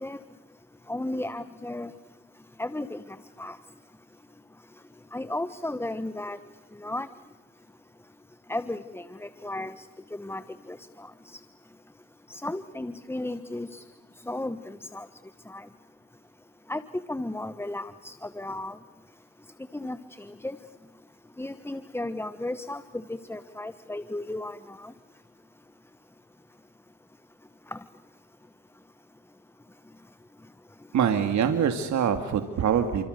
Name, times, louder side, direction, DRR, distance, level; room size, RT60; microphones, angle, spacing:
voice 1, 0.9-1.9 2.6-3.0 3.4-3.6 5.1-6.4 6.8-7.1 8.5-9.8 10.2-10.4 10.7-11.1 11.3-11.4 12.3-13.8 14.3-15.0 15.5-15.6 16.7-16.8 17.1-18.8 19.7-20.6 21.4-22.8 23.1-24.9 27.7-27.8, left 1 dB, 10° left, 12 dB, 1.2 m, -34 dB
voice 2, 30.9-33.0, right 8 dB, 70° right, 7 dB, 2.5 m, -24 dB
30.0 x 26.0 x 6.8 m, 1.2 s
cardioid pair, 90°, 30 cm